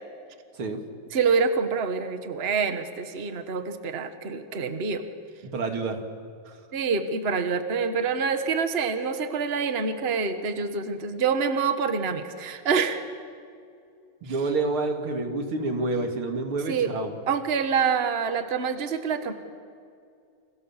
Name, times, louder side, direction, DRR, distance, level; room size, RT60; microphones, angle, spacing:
voice 1, 1.1-5.0 6.7-13.0 16.7-16.9 17.3-19.3, right 5 dB, 30° right, 8 dB, 1.5 m, -26 dB
voice 2, 5.4-6.0 6.5-6.6 14.2-17.1, right 3 dB, 85° right, 4 dB, 3.4 m, -28 dB
29.0 x 26.5 x 7.4 m, 2.4 s
omnidirectional pair, 2.3 m